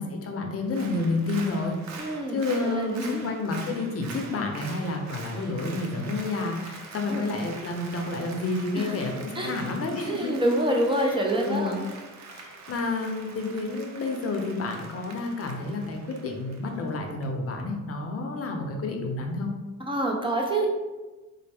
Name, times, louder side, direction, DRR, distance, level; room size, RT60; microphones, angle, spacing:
voice 1, 0.0-10.3 11.0-11.1 11.4-11.8 12.3-19.5, left 3 dB, 50° left, 3 dB, 0.6 m, -30 dB
Applause, 0.6-17.2 17.6-17.7, right 4 dB, 65° right, 0.6 m, -44 dB
voice 2, 2.0-3.2 7.1-7.2 8.7-9.0 9.3-9.8 10.0-11.9 19.8-20.7, right 1 dB, 15° right, -1 dB, 0.6 m, -27 dB
4.1 x 2.0 x 3.4 m, 1.2 s
cardioid pair, 90°, 30 cm